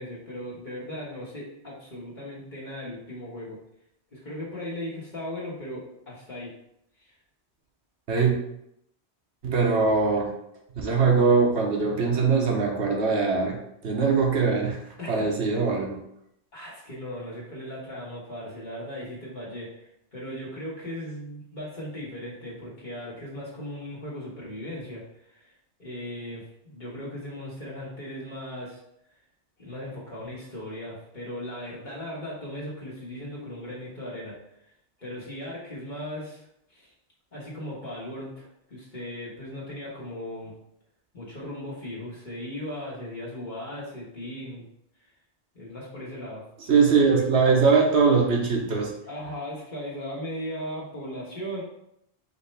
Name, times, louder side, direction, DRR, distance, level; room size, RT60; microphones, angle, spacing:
voice 1, 0.0-3.6 4.1-6.5 7.0-7.1 15.0-15.3 16.5-25.0 25.3-25.5 25.8-28.8 29.6-34.4 35.0-36.4 36.7-36.9 37.3-40.5 41.1-44.6 45.5-46.4 49.1-51.6, left 1 dB, 45° left, -6 dB, 1.6 m, -37 dB
voice 2, 9.4-10.3 10.8-13.6 13.8-14.8 15.1-16.0 46.7-48.9, right 5 dB, 75° right, 0 dB, 1.2 m, -21 dB
5.1 x 2.9 x 3.3 m, 0.76 s
omnidirectional pair, 1.1 m